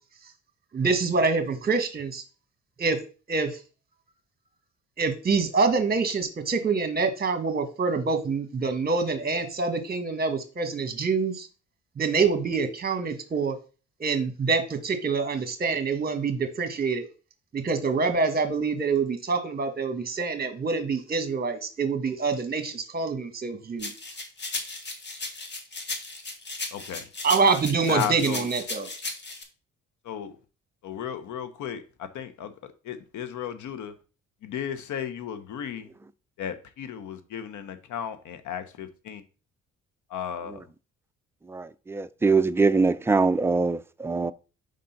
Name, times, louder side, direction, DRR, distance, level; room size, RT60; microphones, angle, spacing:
voice 1, 0.7-2.2 2.8-3.0 3.3-3.6 5.0-11.5 12.0-13.6 14.0-17.1 17.5-23.9 27.2-28.9, right 4 dB, 30° right, 1.4 m, -26 dB
sound 1, 23.8-29.4, left 2 dB, 35° left, 1.4 m, -36 dB
voice 2, 26.7-27.1 27.9-28.5 30.0-30.3 30.8-33.9 34.4-35.9 36.4-39.2 40.1-40.6, left 8 dB, 75° left, 0.9 m, -34 dB
voice 3, 41.5-44.3, right 4 dB, 10° right, 0.4 m, -23 dB
5.2 x 3.8 x 5.7 m
cardioid pair, 90°, 30 cm